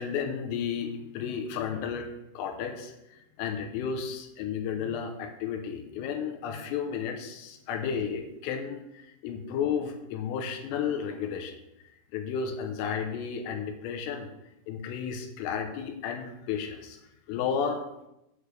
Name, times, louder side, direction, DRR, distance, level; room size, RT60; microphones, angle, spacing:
voice 1, 0.0-2.9 3.4-8.8 9.2-11.5 12.1-14.3 14.7-17.0 17.3-17.8, left 7 dB, 80° left, 4 dB, 3.3 m, -32 dB
8.5 x 8.2 x 3.2 m, 0.88 s
omnidirectional pair, 6.0 m